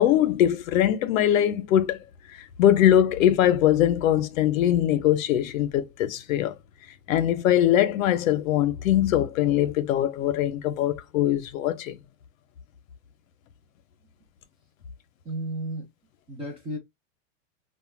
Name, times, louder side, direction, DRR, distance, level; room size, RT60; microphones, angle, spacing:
voice 1, 0.0-2.0 2.6-6.5 7.1-12.0, left 11 dB, 85° left, 0.6 m, -22 dB
voice 2, 15.2-15.9 16.3-16.8, right 1 dB, 15° right, 0.4 m, -33 dB
2.4 x 2.1 x 3.0 m
supercardioid pair, 150°, 39 cm